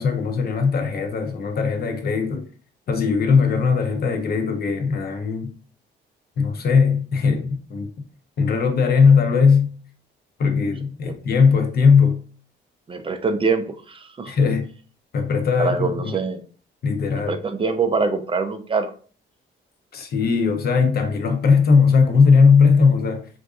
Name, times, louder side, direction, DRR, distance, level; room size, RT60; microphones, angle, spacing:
voice 1, 0.0-2.5 2.9-5.5 6.4-7.9 8.4-9.7 10.4-12.2 14.3-14.7 15.1-16.2 16.8-17.3 19.9-23.3, left 5 dB, 50° left, 0.7 m, -18 dB
voice 2, 12.9-14.3 15.6-16.4 17.1-18.9, right 4 dB, 25° right, 0.4 m, -24 dB
3.9 x 2.5 x 2.3 m
cardioid pair, 90°, 20 cm